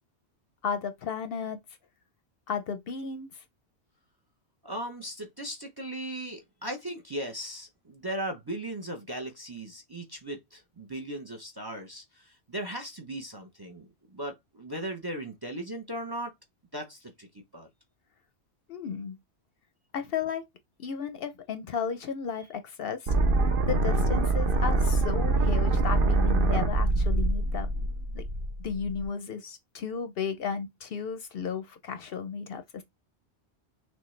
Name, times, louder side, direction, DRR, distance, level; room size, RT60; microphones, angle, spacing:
voice 1, 0.6-1.6 2.5-3.3 18.7-19.2 19.9-20.4 20.8-23.1 23.7-27.7 28.1-28.2 28.6-32.8, left 6 dB, 60° left, 0.7 m, -34 dB
voice 2, 4.6-16.3 16.7-17.7, right 1 dB, 25° right, 0.6 m, -37 dB
sound 1, 23.1-29.0, right 2 dB, 55° right, 0.9 m, -25 dB
6.2 x 2.2 x 3.2 m
omnidirectional pair, 1.2 m